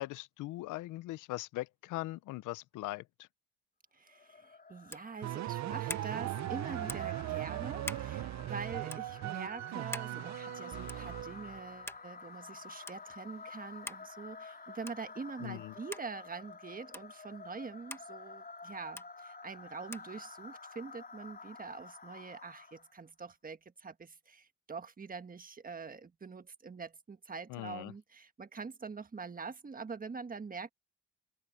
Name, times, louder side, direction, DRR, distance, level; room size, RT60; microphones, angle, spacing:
voice 1, 0.0-3.3 15.4-15.7 27.5-27.9, left 18 dB, 90° left, 0.6 m, -40 dB
voice 2, 3.9-30.7, right 5 dB, 30° right, 1.5 m, -45 dB
sound 1, 4.1-23.0, left 4 dB, 30° left, 4.5 m, -50 dB
sound 2, 4.9-5.1 5.9-6.1 6.9-7.1 7.8-8.1 8.9-9.0 9.9-10.1 10.9-11.1 11.9-12.1 12.9-13.0 13.9-14.1 14.8-15.1 15.9-16.1 16.9-17.1 17.9-18.1 19.0-19.1 19.9-20.1, left 1 dB, 10° left, 1.7 m, -43 dB
sound 3, 5.2-11.7, right 15 dB, 65° right, 0.6 m, -38 dB
open air
cardioid pair, 90°, 30 cm